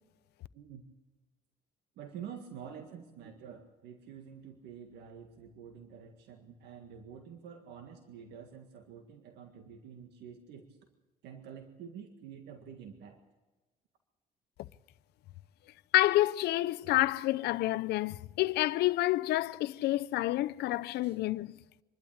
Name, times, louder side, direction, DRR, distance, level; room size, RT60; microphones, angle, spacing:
voice 1, 0.5-0.8 1.9-10.8 11.2-13.2 21.0-21.2, right 7 dB, 80° right, 1.8 m, -48 dB
voice 2, 15.9-21.6, left 16 dB, 75° left, 0.6 m, -28 dB
26.5 x 12.0 x 8.7 m
cardioid pair, 110°, 17 cm